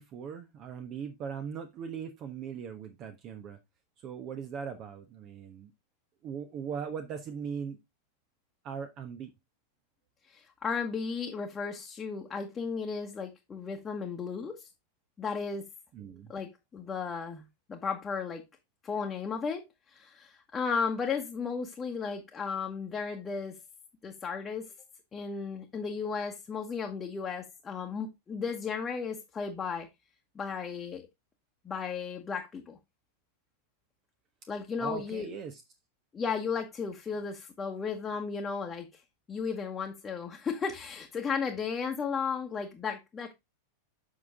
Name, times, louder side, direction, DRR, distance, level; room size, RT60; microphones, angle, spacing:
voice 1, 0.0-3.6 4.0-5.7 6.2-7.8 8.6-9.3 15.9-16.3 34.8-35.6, right 7 dB, 35° right, 1.1 m, -39 dB
voice 2, 10.3-14.7 15.2-15.7 16.3-18.4 18.8-23.6 24.0-24.7 25.1-29.9 30.3-31.0 31.6-32.8 34.5-35.3 36.1-39.0 39.3-43.3, left 5 dB, 20° left, 1.3 m, -34 dB
7.8 x 6.1 x 3.5 m
figure-of-eight pair, 90°, 0 cm